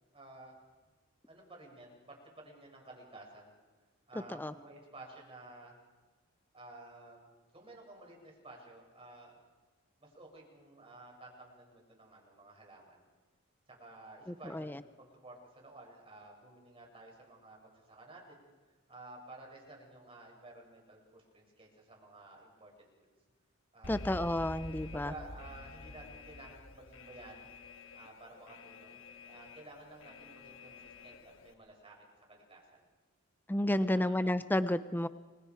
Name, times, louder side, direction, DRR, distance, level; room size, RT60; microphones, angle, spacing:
voice 1, 0.1-0.5 1.3-3.5 4.1-5.8 6.5-9.4 10.0-13.0 13.7-18.5 18.9-22.8 23.7-24.1 24.8-27.5 27.9-29.0 29.3-32.8 33.7-34.2, right 2 dB, 25° right, 0 dB, 6.6 m, -53 dB
Alarm, 23.8-31.5, left 2 dB, 65° left, 1.4 m, -49 dB
voice 2, 23.9-25.1 33.5-35.1, left 1 dB, 10° left, 13 dB, 0.6 m, -31 dB
29.5 x 23.0 x 4.7 m, 1.3 s
head